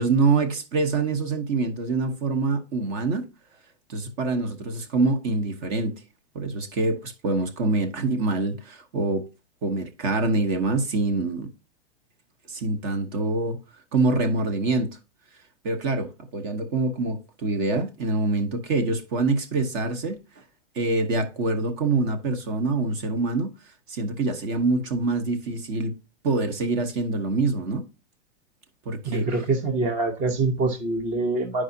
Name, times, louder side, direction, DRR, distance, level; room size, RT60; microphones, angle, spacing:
voice 1, 0.0-3.3 3.9-6.0 6.3-9.3 9.6-11.5 12.5-13.6 13.9-15.0 15.6-20.2 20.7-23.5 23.9-25.9 26.2-27.8 28.9-29.3, right 3 dB, 40° right, 1.1 m, -25 dB
voice 2, 29.0-31.6, right 3 dB, 20° right, 0.8 m, -25 dB
10.0 x 4.9 x 2.7 m
supercardioid pair, 145°, 35 cm